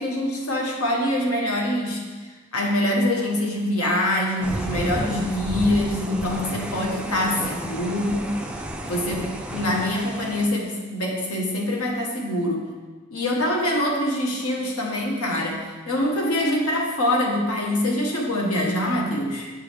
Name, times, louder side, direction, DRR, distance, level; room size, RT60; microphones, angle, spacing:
voice 1, 0.0-2.0 2.5-8.3 8.8-12.6 13.1-19.5, left 1 dB, 85° left, 0 dB, 1.2 m, -24 dB
sound 1, 4.4-10.5, right 1 dB, 5° right, 0.3 m, -32 dB
7.6 x 4.8 x 3.3 m, 1.4 s
head